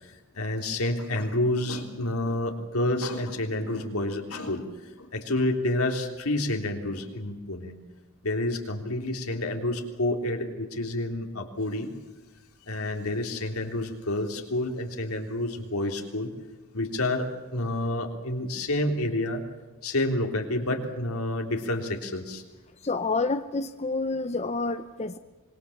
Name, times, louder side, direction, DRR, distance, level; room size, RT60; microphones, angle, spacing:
voice 1, 0.0-4.6 5.0-7.7 8.2-11.9 12.7-16.3 16.7-19.4 19.8-22.4, left 1 dB, 80° left, 3 dB, 3.4 m, -29 dB
voice 2, 22.8-25.2, left 3 dB, 30° left, 9 dB, 0.7 m, -28 dB
26.0 x 22.0 x 7.2 m, 1.2 s
head